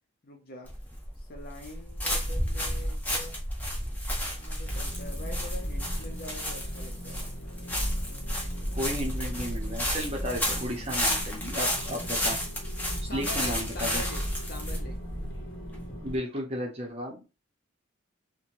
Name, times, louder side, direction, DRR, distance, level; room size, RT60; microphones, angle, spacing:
voice 1, 0.2-0.7 1.2-3.4 4.2-7.3 13.0-14.2 14.5-15.0, left 2 dB, 50° left, 3 dB, 0.7 m, -44 dB
sound 1, 0.7-16.2, equal, 10° left, 0.7 m, -31 dB
sound 2, 4.6-16.2, equal, 85° left, 0.8 m, -44 dB
voice 2, 8.7-12.4 13.0-14.0 16.0-17.2, equal, 30° right, 0 dB, 0.8 m, -34 dB
2.8 x 2.2 x 2.9 m, 0.30 s
head